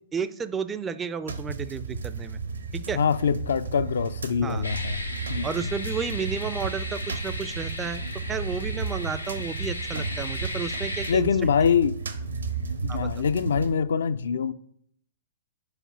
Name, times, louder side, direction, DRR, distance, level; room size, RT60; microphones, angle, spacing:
voice 1, 0.1-2.4 2.7-3.0 4.4-4.6 5.4-8.0 8.3-11.3 12.9-13.1, right 6 dB, 15° right, 0.3 m, -32 dB
sound 1, 1.3-13.7, right 4 dB, 70° right, 0.8 m, -33 dB
voice 2, 3.0-5.0 5.3-5.7 11.1-12.0 12.8-14.5, left 7 dB, 60° left, 0.3 m, -24 dB
sound 2, 4.6-11.1, left 2 dB, 85° left, 0.9 m, -36 dB
4.9 x 4.8 x 6.0 m
figure-of-eight pair, 110°, 0 cm